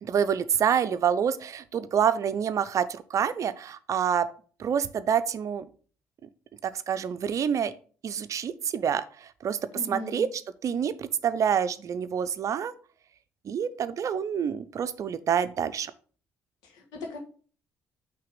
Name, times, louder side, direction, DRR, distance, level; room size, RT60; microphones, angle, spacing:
voice 1, 0.0-4.3 4.6-5.7 6.6-7.7 8.0-9.6 9.9-12.7 13.4-15.9, right 8 dB, 50° right, 13 dB, 0.5 m, -27 dB
voice 2, 9.7-10.3 16.6-17.2, left 2 dB, 75° left, 1 dB, 1.5 m, -38 dB
5.6 x 3.4 x 5.2 m, 0.42 s
hypercardioid pair, 55°, 7 cm